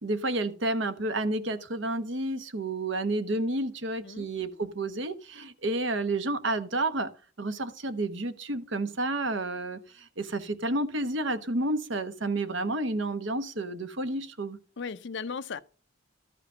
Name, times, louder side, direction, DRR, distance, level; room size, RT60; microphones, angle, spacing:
voice 1, 0.0-7.1 7.4-14.6, right 2 dB, 60° right, 1.1 m, -30 dB
voice 2, 14.8-15.6, left 5 dB, 55° left, 0.5 m, -36 dB
13.5 x 5.0 x 5.5 m
head